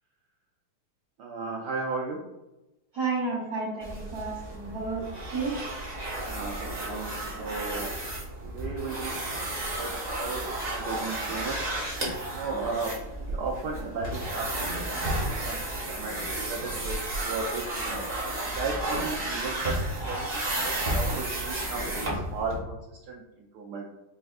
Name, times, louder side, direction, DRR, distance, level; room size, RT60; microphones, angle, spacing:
voice 1, 1.2-2.2 6.2-7.9 8.4-11.7 12.3-12.9 13.2-18.0 18.4-23.9, right 4 dB, 85° right, -1 dB, 0.9 m, -36 dB
voice 2, 2.9-5.0 5.3-5.5, right 4 dB, 55° right, -8 dB, 1.5 m, -31 dB
sound 1, 3.8-22.6, right 1 dB, 30° right, 0.7 m, -32 dB
5.4 x 3.3 x 2.4 m, 0.98 s
omnidirectional pair, 2.4 m